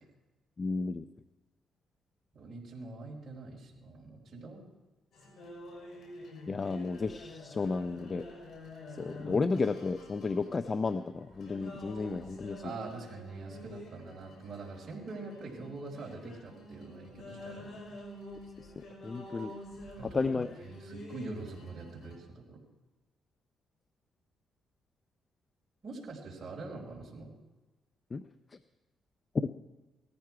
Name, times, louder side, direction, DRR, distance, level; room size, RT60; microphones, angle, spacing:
voice 1, 0.6-1.0 6.5-8.2 9.0-12.6 19.0-19.5 20.1-20.5 28.1-28.2 29.3-29.5, left 4 dB, 35° left, 11 dB, 0.6 m, -32 dB
voice 2, 2.3-4.6 12.6-18.0 20.0-20.2 20.6-22.6 25.8-27.3, right 3 dB, 40° right, -4 dB, 4.6 m, -44 dB
sound 1, 5.1-22.2, left 1 dB, 65° left, 5.7 m, -48 dB
19.0 x 14.0 x 4.7 m, 1.1 s
cardioid pair, 90°, 0 cm